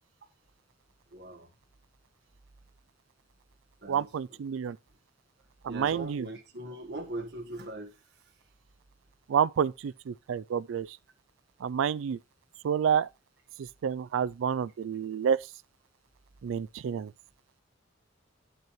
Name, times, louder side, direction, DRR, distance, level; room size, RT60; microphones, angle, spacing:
voice 1, 1.1-1.5 3.8-4.1 5.7-7.9, right 1 dB, 55° right, 1.5 m, -40 dB
voice 2, 3.9-4.8 5.6-6.3 9.3-11.0 11.6-12.2 12.6-13.1 13.6-15.4 16.4-17.1, right 7 dB, 85° right, 0.3 m, -29 dB
9.0 x 8.1 x 3.1 m
head